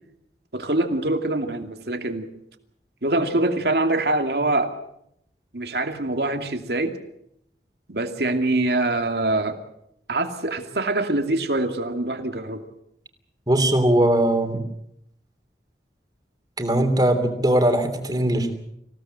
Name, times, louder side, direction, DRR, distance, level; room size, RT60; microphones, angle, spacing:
voice 1, 0.5-2.3 3.0-4.7 5.5-7.0 7.9-9.6 10.1-12.6, right 2 dB, 65° right, 5 dB, 2.6 m, -24 dB
voice 2, 13.5-14.6 16.6-18.5, right 1 dB, 20° right, 6 dB, 3.2 m, -20 dB
26.5 x 17.0 x 7.8 m, 0.76 s
head